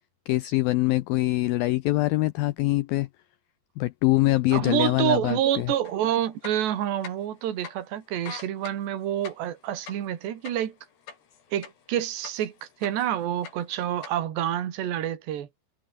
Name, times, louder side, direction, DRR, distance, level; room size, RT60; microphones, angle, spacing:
voice 1, 0.3-3.1 3.8-5.7, left 18 dB, 90° left, 2.0 m, -24 dB
voice 2, 4.5-10.7 11.5-15.5, right 11 dB, 75° right, 4.5 m, -28 dB
sound 1, 5.8-6.0 6.3-7.4 7.6-7.8 8.1-11.9 12.2-13.1 13.4-14.1, left 7 dB, 70° left, 5.8 m, -42 dB
omnidirectional pair, 5.0 m